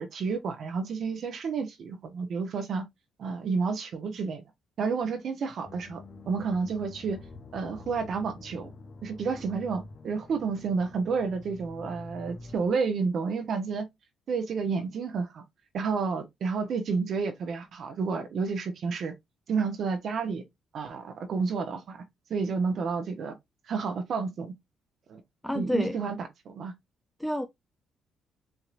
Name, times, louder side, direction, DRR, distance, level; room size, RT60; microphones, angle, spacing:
voice 1, 0.0-2.9 3.2-4.4 4.8-6.0 6.2-7.2 7.5-8.7 9.0-13.8 14.3-15.4 15.7-19.1 19.5-20.4 20.7-22.0 22.3-23.3 23.7-24.5 25.1-25.2 25.5-26.2 26.4-26.7, right 5 dB, 60° right, 0.9 m, -30 dB
sound 1, 5.6-12.7, left 3 dB, 45° left, 0.7 m, -47 dB
voice 2, 25.4-26.0 27.2-27.4, equal, 5° left, 0.5 m, -28 dB
5.8 x 2.9 x 2.5 m
cardioid pair, 90°, 0 cm